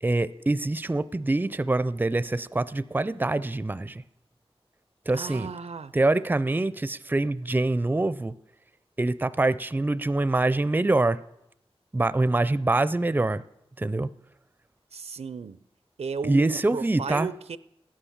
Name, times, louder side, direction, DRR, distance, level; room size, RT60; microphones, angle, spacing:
voice 1, 0.0-4.0 5.1-5.5 5.9-8.3 9.0-11.2 11.9-13.4 13.8-14.1 16.2-17.3, right 2 dB, 20° right, 16 dB, 0.4 m, -25 dB
voice 2, 5.1-5.9 14.9-15.6 16.0-17.6, right 5 dB, 80° right, 15 dB, 0.5 m, -34 dB
13.5 x 9.9 x 7.3 m, 0.85 s
wide cardioid pair, 70°, 11 cm